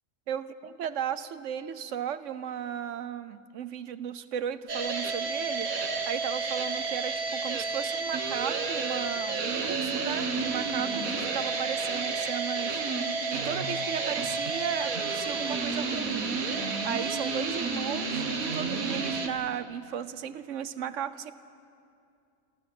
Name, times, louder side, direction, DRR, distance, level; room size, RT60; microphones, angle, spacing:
voice 1, 0.3-12.8 13.3-16.4 16.8-21.3, right 9 dB, 65° right, 14 dB, 1.1 m, -35 dB
sound 1, 4.7-19.3, right 4 dB, 80° right, 1.9 m, -31 dB
26.5 x 15.5 x 7.8 m, 2.5 s
omnidirectional pair, 1.4 m